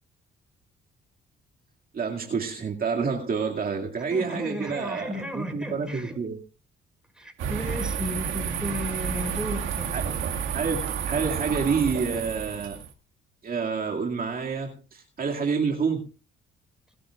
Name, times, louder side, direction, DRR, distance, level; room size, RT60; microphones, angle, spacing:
voice 1, 1.9-6.4 9.9-10.0 10.5-12.8 13.4-16.1, right 5 dB, 45° right, 0 dB, 2.3 m, -28 dB
voice 2, 4.1-6.2 7.2-10.0, left 1 dB, 5° right, 5 dB, 5.5 m, -34 dB
sound 1, 7.4-12.9, right 7 dB, 85° right, 2.0 m, -30 dB
29.5 x 10.0 x 2.5 m, 0.34 s
cardioid pair, 90°, 20 cm